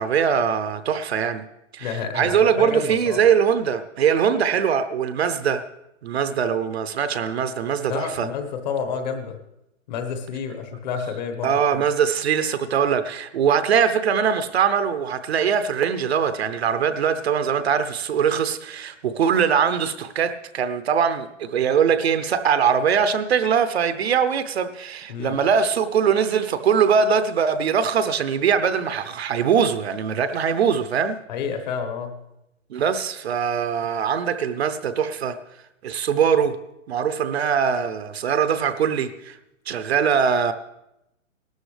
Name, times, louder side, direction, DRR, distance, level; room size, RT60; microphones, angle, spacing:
voice 1, 0.0-1.4 1.7-5.6 6.0-8.3 11.4-31.2 32.7-35.4 35.8-36.6 36.9-39.4 39.7-40.5, right 7 dB, 50° right, 11 dB, 0.8 m, -22 dB
voice 2, 1.8-3.2 7.9-9.4 9.9-11.8 25.1-25.3 31.3-32.1, left 6 dB, 35° left, 6 dB, 1.3 m, -29 dB
17.5 x 13.0 x 3.3 m, 0.87 s
hypercardioid pair, 165°, 40 cm